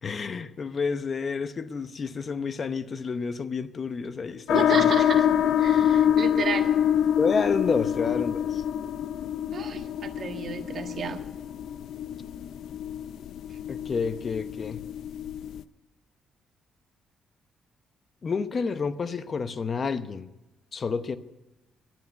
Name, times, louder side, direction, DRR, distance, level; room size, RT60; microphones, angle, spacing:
voice 1, 0.0-4.9 7.2-8.6 13.7-14.8 18.2-20.3 20.7-21.2, left 5 dB, 40° left, 0.8 m, -29 dB
sound 1, 4.5-15.6, left 9 dB, 75° left, 0.5 m, -26 dB
voice 2, 4.5-5.3 5.6-6.7 9.5-11.2, right 6 dB, 55° right, 1.5 m, -32 dB
12.0 x 10.5 x 9.4 m
cardioid pair, 90°, 0 cm